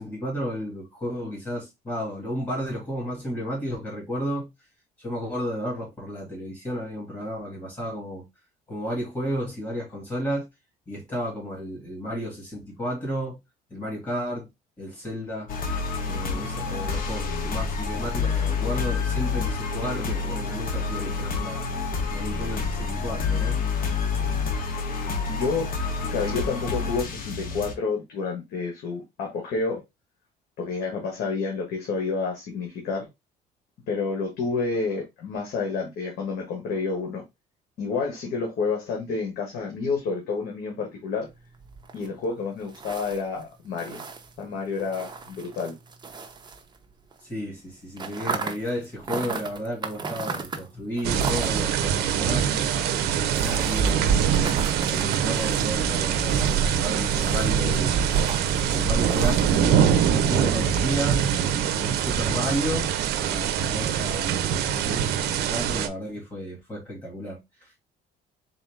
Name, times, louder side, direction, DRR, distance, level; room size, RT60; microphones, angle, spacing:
voice 1, 0.0-4.5 5.0-8.2 8.7-10.5 10.9-13.4 13.7-14.5 14.8-15.5 16.0-23.6 47.2-54.1 54.9-57.9 58.7-61.2 61.7-62.9 63.2-67.8, equal, 20° left, 2.2 m, -33 dB
sound 1, 15.5-27.7, left 4 dB, 55° left, 1.0 m, -28 dB
voice 2, 25.3-25.7 26.1-29.8 30.6-33.1 33.9-37.2 37.8-41.3 41.9-44.0 44.4-45.7, left 4 dB, 70° left, 1.4 m, -29 dB
sound 2, 41.2-47.2 47.5-59.7, right 5 dB, 25° right, 0.8 m, -38 dB
sound 3, 51.0-65.9, right 8 dB, 75° right, 0.6 m, -23 dB
4.1 x 2.5 x 3.5 m
cardioid pair, 110°, 17 cm